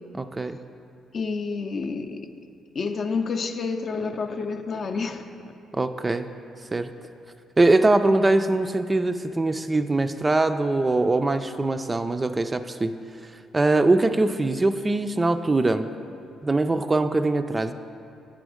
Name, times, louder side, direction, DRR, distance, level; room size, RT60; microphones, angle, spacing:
voice 1, 0.2-0.6 5.7-6.3 6.7-6.9 7.6-12.9 13.5-15.9 16.4-17.7, right 2 dB, 20° right, 9 dB, 0.3 m, -22 dB
voice 2, 1.1-2.3 2.7-5.2, left 4 dB, 50° left, 6 dB, 0.5 m, -29 dB
8.7 x 5.1 x 4.9 m, 2.6 s
cardioid pair, 90°, 0 cm